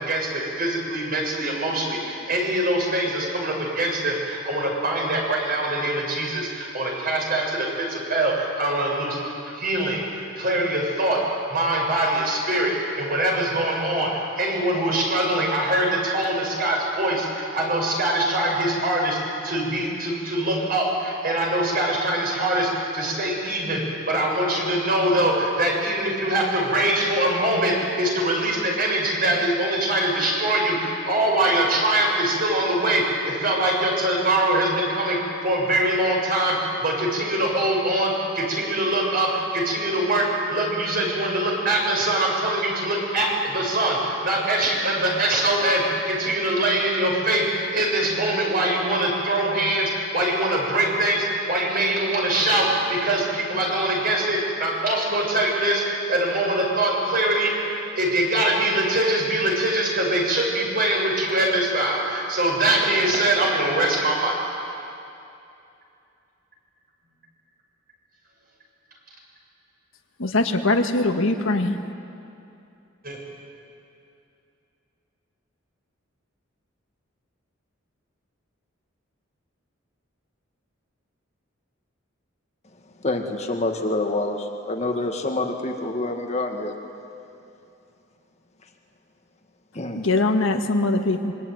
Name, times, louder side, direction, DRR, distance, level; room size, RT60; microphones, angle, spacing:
voice 1, 0.0-10.0 10.4-11.2 11.5-35.2 35.4-57.5 58.0-64.3 73.0-73.2, right 1 dB, 45° right, -1 dB, 6.9 m, -23 dB
voice 2, 70.2-71.8 89.9-91.3, left 2 dB, 75° left, 5 dB, 1.7 m, -22 dB
voice 3, 83.0-86.7 89.7-90.0, left 2 dB, 35° left, 3 dB, 1.9 m, -27 dB
26.0 x 24.0 x 9.4 m, 2.7 s
head